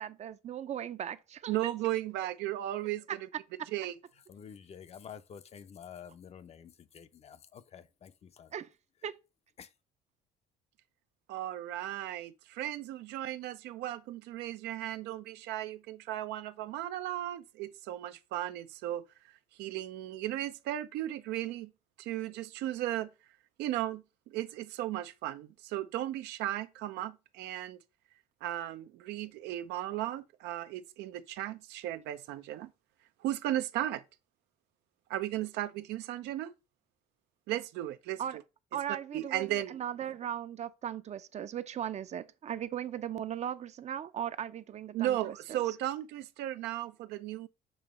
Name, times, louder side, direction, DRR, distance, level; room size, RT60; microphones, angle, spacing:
voice 1, 0.0-1.6 8.5-8.7 9.0-9.2 38.2-38.4 38.7-45.8, right 10 dB, 40° right, 0.5 m, -38 dB
voice 2, 1.5-3.3 3.7-3.9 11.3-19.0 19.6-21.7 22.0-23.1 23.6-27.8 28.4-32.7 33.2-34.0 35.1-36.5 37.5-38.2 39.1-39.8 44.9-47.5, right 13 dB, 85° right, 0.6 m, -35 dB
voice 3, 4.3-8.5 9.6-9.7, left 8 dB, 40° left, 0.5 m, -49 dB
7.0 x 2.9 x 4.9 m
cardioid pair, 110°, 17 cm